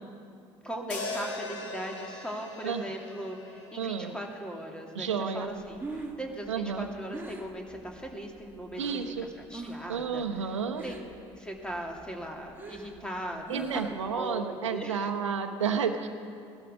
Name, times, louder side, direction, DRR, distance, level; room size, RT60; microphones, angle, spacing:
voice 1, 0.6-10.5 10.8-11.0 11.4-15.1, equal, 5° left, 1 dB, 2.5 m, -39 dB
sound 1, 0.9-5.2, left 2 dB, 75° left, 2.3 m, -41 dB
voice 2, 3.8-4.1 4.9-5.5 6.5-6.9 8.8-9.3 9.9-10.8 13.5-16.1, right 6 dB, 80° right, 6 dB, 1.0 m, -31 dB
Breathing, 5.7-9.1 9.5-10.0 10.2-11.2 11.6-14.2, right 2 dB, 15° right, 2.2 m, -42 dB
17.0 x 12.0 x 6.3 m, 2.5 s
figure-of-eight pair, 60°, 15 cm